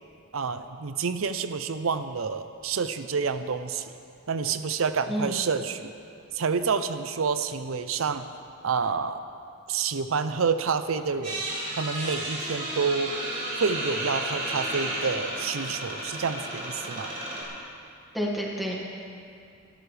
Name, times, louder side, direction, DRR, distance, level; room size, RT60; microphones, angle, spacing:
voice 1, 0.3-3.9 4.3-5.9 6.3-8.3 8.6-9.2 9.7-11.4 11.8-13.2 13.6-17.1, right 5 dB, 85° right, 10 dB, 0.6 m, -28 dB
voice 2, 5.1-5.4 18.1-18.8, equal, ahead, -3 dB, 1.8 m, -29 dB
sound 1, 11.2-17.4, right 1 dB, 40° right, 4.5 m, -33 dB
24.5 x 12.5 x 3.3 m, 2.4 s
head